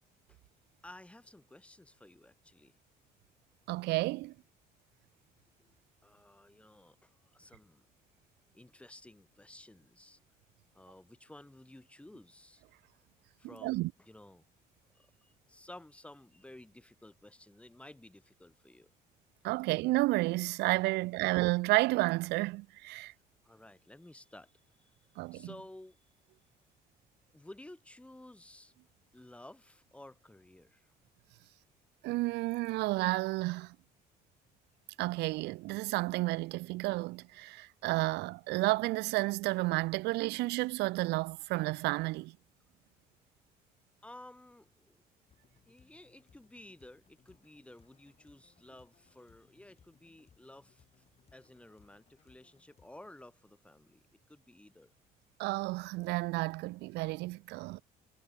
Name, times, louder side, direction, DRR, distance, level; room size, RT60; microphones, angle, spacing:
voice 1, 0.8-2.8 5.6-5.7 6.0-7.8 8.5-10.2 10.7-12.6 13.4-14.5 14.9-18.9 20.9-21.0 23.4-25.0 25.3-26.0 27.3-28.7 29.1-30.9 44.0-45.0 45.7-51.0 51.3-54.9, left 1 dB, 5° left, 1.9 m, -54 dB
voice 2, 3.7-4.3 13.6-13.9 19.4-23.1 25.2-25.5 32.0-33.8 35.0-42.3 55.4-57.8, right 21 dB, 85° right, 0.5 m, -31 dB
sound 1, 45.3-53.3, left 6 dB, 40° left, 6.4 m, -68 dB
cardioid pair, 110°, 17 cm